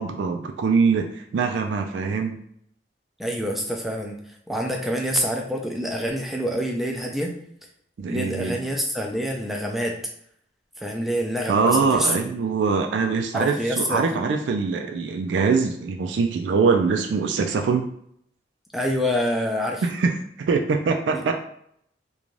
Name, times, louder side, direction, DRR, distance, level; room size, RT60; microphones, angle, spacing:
voice 1, 0.0-2.4 8.0-8.6 11.5-17.9 19.8-21.4, right 5 dB, 80° right, 4 dB, 0.3 m, -23 dB
voice 2, 3.2-7.3 8.1-10.0 10.8-12.3 13.3-14.3 18.7-19.8 21.1-21.3, equal, ahead, 0 dB, 0.4 m, -26 dB
2.5 x 2.2 x 3.1 m, 0.69 s
head